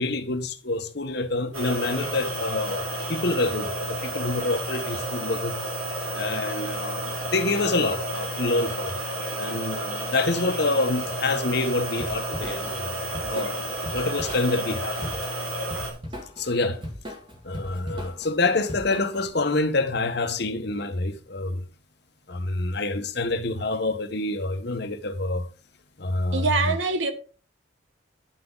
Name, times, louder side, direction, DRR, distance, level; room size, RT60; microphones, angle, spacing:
voice 1, 0.0-5.6 6.1-9.0 9.4-13.6 13.9-15.2 16.4-16.8 17.4-21.6 22.3-25.5 26.0-26.8, left 2 dB, 55° left, 1.1 m, -27 dB
sound 1, 1.5-15.9, right 1 dB, 90° right, 2.7 m, -31 dB
Drum kit / Drum, 12.0-19.3, equal, 25° right, 2.0 m, -39 dB
voice 2, 26.3-27.1, right 4 dB, 70° right, 1.3 m, -24 dB
10.0 x 6.0 x 3.9 m
head